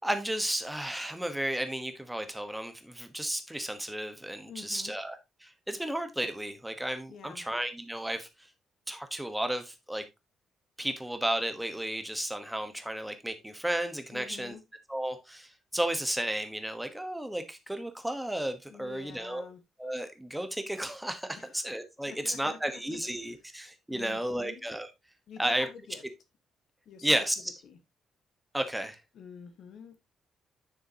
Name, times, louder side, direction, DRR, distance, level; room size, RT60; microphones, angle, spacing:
voice 1, 0.0-8.3 8.9-10.0 10.8-14.5 14.9-19.4 19.8-24.9 25.4-25.7 27.0-27.5 28.5-29.0, right 1 dB, 5° right, 1.1 m, -33 dB
voice 2, 4.5-5.0 7.1-7.5 14.1-14.7 18.7-19.6 21.4-21.7 22.0-23.0 23.9-24.6 25.3-26.0 26.8-27.1 27.6-27.8 29.1-30.0, left 6 dB, 60° left, 1.4 m, -48 dB
9.9 x 6.7 x 2.8 m
cardioid pair, 175°, 0 cm